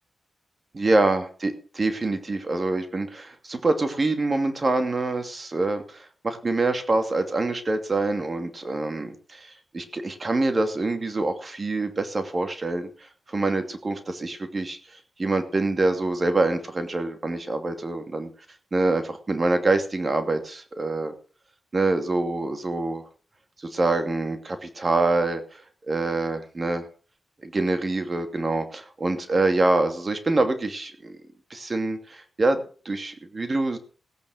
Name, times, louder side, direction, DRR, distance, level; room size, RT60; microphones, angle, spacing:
voice 1, 0.7-18.3 18.7-21.1 21.7-23.0 23.6-26.9 27.4-31.1 31.5-33.8, right 2 dB, 40° right, 7 dB, 2.6 m, -25 dB
17.0 x 8.9 x 6.5 m, 0.39 s
cardioid pair, 70°, 0 cm